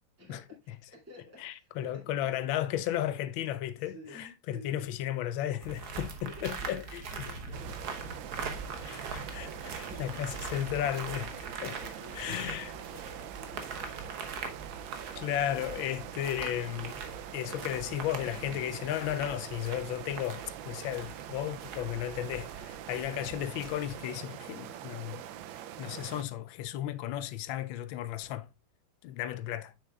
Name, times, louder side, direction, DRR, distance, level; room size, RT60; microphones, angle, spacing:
voice 1, 0.2-2.3 3.8-4.9 6.0-7.8 9.4-10.4 11.3-14.1, left 1 dB, 5° right, 2.5 m, -52 dB
voice 2, 1.4-7.0 8.8-11.3 11.6-11.8 12.1-12.7 15.2-17.0 17.3-25.3 25.8-28.5 29.0-29.7, left 12 dB, 80° left, 1.4 m, -34 dB
sound 1, 5.6-24.0, right 4 dB, 55° right, 1.5 m, -42 dB
sound 2, 7.5-26.2, right 11 dB, 80° right, 1.3 m, -44 dB
7.9 x 6.5 x 2.3 m
omnidirectional pair, 2.1 m